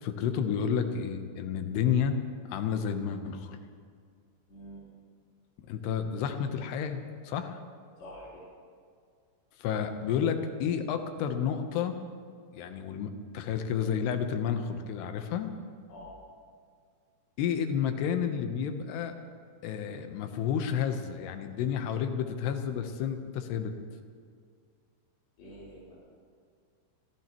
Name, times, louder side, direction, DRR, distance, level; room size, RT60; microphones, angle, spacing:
voice 1, 0.0-2.2 2.5-3.6 5.7-7.6 9.6-12.0 12.5-15.5 17.4-19.2 19.6-23.7, left 7 dB, 90° left, 7 dB, 3.1 m, -31 dB
voice 2, 4.5-4.8 8.0-8.4 15.9-16.1 25.4-25.9, equal, 65° left, -10 dB, 6.1 m, -46 dB
28.0 x 15.0 x 3.0 m, 2.2 s
omnidirectional pair, 4.7 m